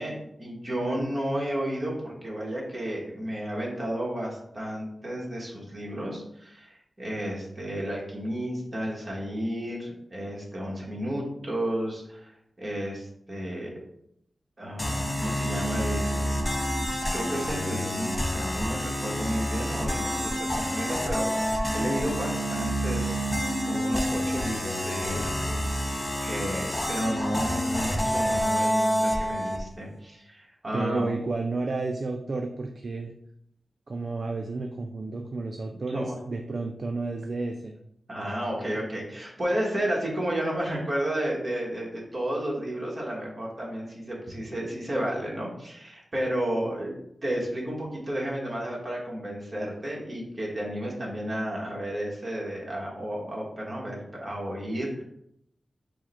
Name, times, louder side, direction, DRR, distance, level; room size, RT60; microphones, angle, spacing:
voice 1, 0.0-12.3 12.6-13.7 14.6-16.2 16.9-23.3 23.7-25.3 25.8-31.1 35.7-36.2 38.1-47.0 47.2-55.0, equal, 30° right, -4 dB, 1.3 m, -32 dB
sound 1, 14.8-29.6, equal, 20° left, 0.6 m, -28 dB
voice 2, 30.7-33.1 33.9-37.8 46.6-46.7, right 3 dB, 45° right, 3 dB, 0.3 m, -31 dB
4.7 x 2.1 x 4.3 m, 0.74 s
wide cardioid pair, 140°, 0 cm